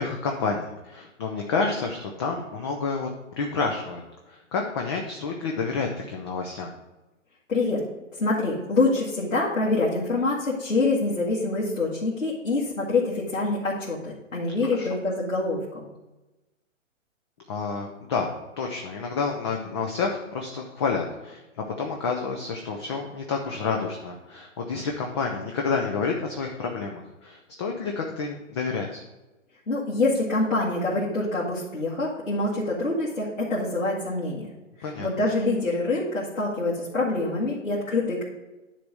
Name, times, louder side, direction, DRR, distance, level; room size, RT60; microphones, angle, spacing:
voice 1, 0.0-3.1 3.4-4.0 4.3-6.7 14.7-14.9 17.5-29.0 34.8-35.1, left 4 dB, 20° left, 1 dB, 0.5 m, -29 dB
voice 2, 7.5-7.8 8.2-15.9 29.7-34.5 35.0-38.2, left 2 dB, 90° left, -7 dB, 2.1 m, -25 dB
10.0 x 3.4 x 5.4 m, 1.1 s
figure-of-eight pair, 130°, 39 cm